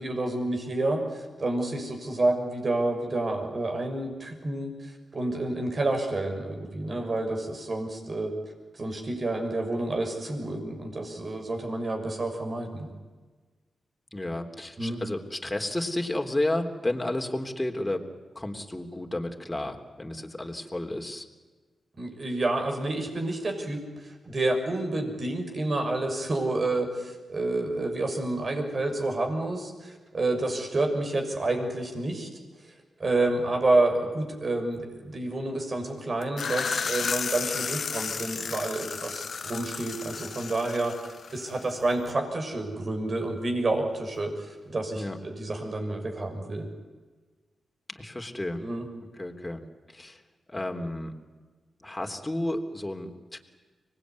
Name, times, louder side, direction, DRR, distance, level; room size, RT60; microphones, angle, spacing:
voice 1, 0.0-12.9 14.8-15.0 22.0-32.3 32.6-32.7 33.0-46.7 48.6-48.8, right 2 dB, 50° right, 3 dB, 6.4 m, -29 dB
voice 2, 14.1-18.0 18.4-21.3 45.0-45.2 48.0-48.7 49.2-49.6 49.9-50.2 50.5-51.1 51.8-53.4, left 1 dB, 20° left, 3 dB, 3.4 m, -32 dB
sound 1, 36.2-41.8, left 5 dB, 65° left, 1.2 m, -33 dB
25.0 x 19.5 x 9.7 m, 1.4 s
supercardioid pair, 45°, 0 cm